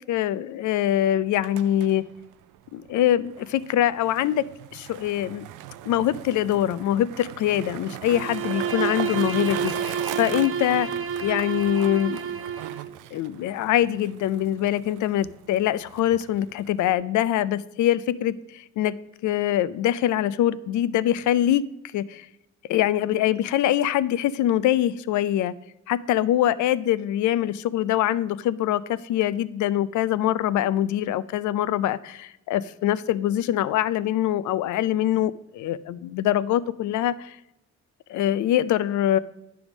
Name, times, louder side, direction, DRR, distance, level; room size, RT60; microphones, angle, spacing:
voice 1, 0.1-2.0 2.7-4.5 4.7-5.4 5.8-10.9 11.2-12.2 13.1-19.0 19.2-21.6 21.9-22.3 22.7-25.5 25.9-37.4 38.1-39.2, left 12 dB, 75° left, 17 dB, 0.5 m, -24 dB
Skateboard, 1.2-16.9, right 12 dB, 85° right, 0.5 m, -40 dB
Bowed string instrument, 8.0-12.9, right 6 dB, 45° right, 0.8 m, -30 dB
9.6 x 3.5 x 6.0 m, 0.88 s
cardioid pair, 90°, 30 cm